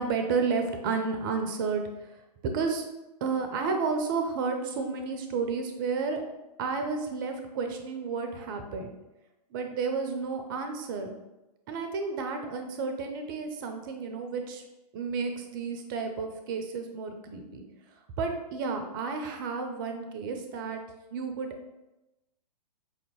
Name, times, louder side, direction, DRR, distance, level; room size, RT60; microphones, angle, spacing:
voice 1, 0.0-2.1 2.4-2.8 3.2-6.2 6.6-8.9 9.5-11.2 11.7-14.6 14.9-17.6 18.2-20.8 21.1-21.5, right 4 dB, 30° right, 6 dB, 0.4 m, -31 dB
5.1 x 2.6 x 2.9 m, 0.99 s
figure-of-eight pair, 115°, 21 cm